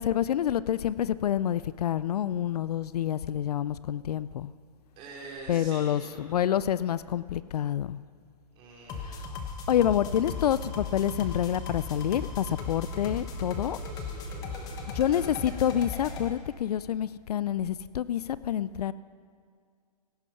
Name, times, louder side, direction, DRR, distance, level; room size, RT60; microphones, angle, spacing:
voice 1, 0.0-4.5 5.5-8.0 9.0-9.4 9.7-13.8 14.9-18.9, left 10 dB, 65° left, 17 dB, 0.4 m, -28 dB
voice 2, 5.0-6.4 8.5-9.2 13.6-15.3, right 3 dB, 25° right, -3 dB, 3.6 m, -46 dB
sound 1, 8.9-16.3, left 4 dB, 15° left, 1.1 m, -37 dB
17.0 x 9.8 x 5.7 m, 2.1 s
hypercardioid pair, 150°, 21 cm